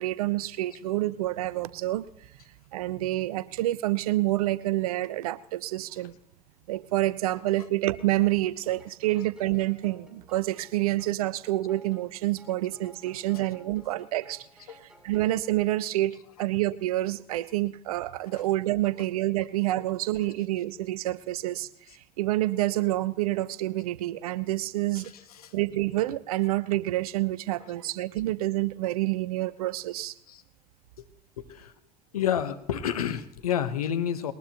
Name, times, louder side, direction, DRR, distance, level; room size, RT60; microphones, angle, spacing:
voice 1, 0.0-2.1 2.7-6.2 6.7-14.8 15.0-21.7 22.2-25.1 25.5-30.1, right 16 dB, 80° right, 18 dB, 0.6 m, -28 dB
sound 1, 8.0-15.4, right 1 dB, 5° right, 7.0 m, -56 dB
voice 2, 16.1-16.5 18.3-18.5 18.8-18.9 20.2-20.3 21.9-22.0 24.9-25.5 27.6-27.7 30.0-30.4 31.0-31.1 31.4-31.7 32.1-34.3, left 9 dB, 85° left, 10 dB, 1.0 m, -32 dB
21.0 x 19.0 x 3.0 m, 0.63 s
figure-of-eight pair, 50°, 19 cm